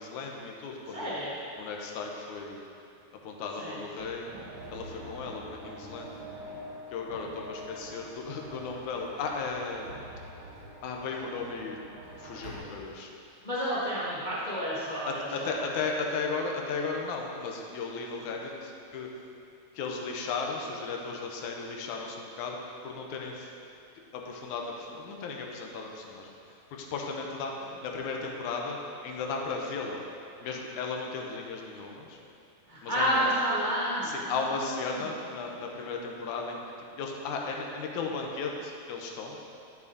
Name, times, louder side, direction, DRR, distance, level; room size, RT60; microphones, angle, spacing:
voice 1, 0.0-1.2 1.6-2.6 3.2-4.3 4.7-6.2 6.9-9.9 10.8-11.8 12.2-13.1 15.1-19.1 19.7-22.6 22.8-23.5 24.1-28.8 29.0-30.0 30.4-32.2 32.8-33.2 34.0-36.6 37.0-39.4, left 4 dB, 85° left, 0 dB, 2.2 m, -35 dB
voice 2, 0.9-1.3 3.6-3.8 13.4-15.5 32.7-34.6 34.9-35.0, equal, 50° left, -9 dB, 0.5 m, -30 dB
sound 1, 4.0-12.6, right 1 dB, 65° right, 0.9 m, -45 dB
12.0 x 7.2 x 2.7 m, 2.6 s
omnidirectional pair, 3.4 m